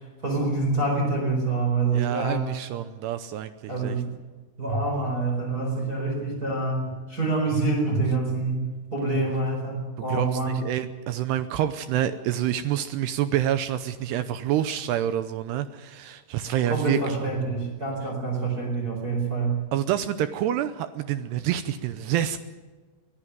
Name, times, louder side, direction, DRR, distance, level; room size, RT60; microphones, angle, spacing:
voice 1, 0.2-2.5 3.7-4.1 4.6-10.6 16.7-19.6, right 3 dB, 20° right, -1 dB, 4.5 m, -26 dB
voice 2, 1.9-4.0 10.1-17.1 19.7-22.4, right 11 dB, 85° right, 11 dB, 2.3 m, -27 dB
24.0 x 15.0 x 9.2 m, 1.4 s
omnidirectional pair, 5.8 m